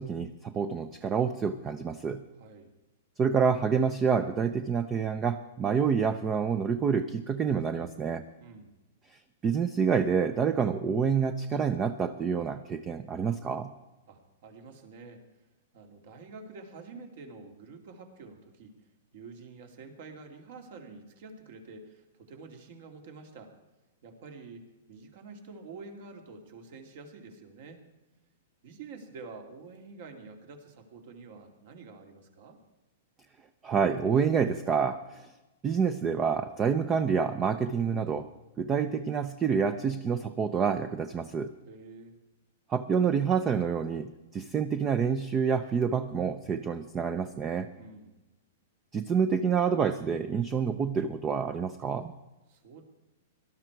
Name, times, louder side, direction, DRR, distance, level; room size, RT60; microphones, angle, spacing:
voice 1, 0.0-2.2 3.2-8.2 9.1-13.7 33.6-35.3 35.6-38.3 38.6-41.5 42.7-47.7 48.9-52.1, right 6 dB, 20° right, 11 dB, 0.6 m, -28 dB
voice 2, 2.4-2.7 8.4-8.7 14.1-15.2 15.7-18.7 19.1-23.5 24.0-27.8 28.6-32.6 41.7-42.2 47.8-48.2 52.5-52.8, right 4 dB, 60° right, 4 dB, 2.5 m, -48 dB
18.0 x 12.5 x 4.6 m, 1.1 s
hypercardioid pair, 155°, 0 cm